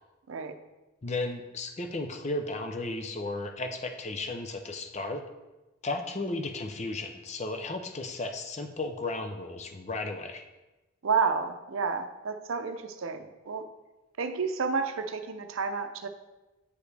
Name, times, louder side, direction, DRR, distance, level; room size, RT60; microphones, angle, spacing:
voice 1, 1.0-5.2 5.8-10.4, left 2 dB, 35° left, 6 dB, 0.5 m, -34 dB
voice 2, 11.0-13.7 14.2-16.1, right 5 dB, 80° right, 8 dB, 0.6 m, -30 dB
8.2 x 5.0 x 3.3 m, 1.1 s
head